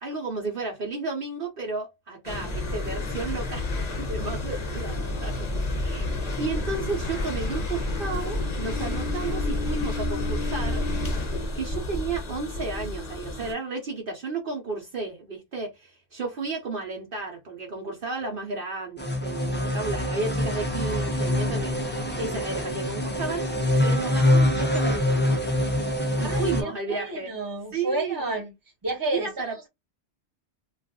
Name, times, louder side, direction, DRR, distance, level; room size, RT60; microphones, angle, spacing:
voice 1, 0.0-3.7 4.0-5.5 5.7-6.1 6.4-10.8 11.5-21.7 22.2-23.4 23.8-25.4 26.2-27.3 27.7-28.2 29.1-29.7, right 4 dB, 55° right, 0.9 m, -33 dB
sound 1, 2.2-13.5, left 2 dB, 40° left, 0.7 m, -30 dB
sound 2, 19.0-26.6, left 1 dB, 15° left, 0.3 m, -25 dB
voice 2, 26.1-28.5 28.8-29.7, right 2 dB, 20° right, 0.9 m, -31 dB
2.4 x 2.3 x 3.5 m
omnidirectional pair, 1.2 m